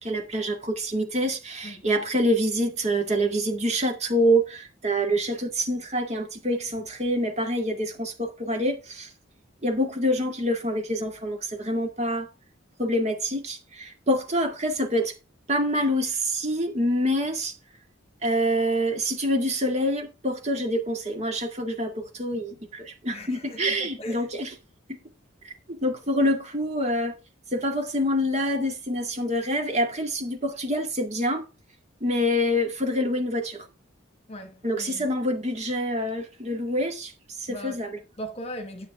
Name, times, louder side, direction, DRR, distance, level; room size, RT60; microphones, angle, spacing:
voice 1, 0.0-9.1 9.6-12.3 12.8-15.1 15.5-17.5 18.2-24.5 24.9-25.0 25.4-27.2 27.5-31.4 32.0-33.7 34.6-37.1 37.4-38.0, equal, 35° right, 1.9 m, -26 dB
voice 2, 23.1-24.3 34.3-35.1 37.5-37.8 38.2-38.9, equal, 30° left, 1.6 m, -39 dB
10.5 x 8.3 x 3.5 m
head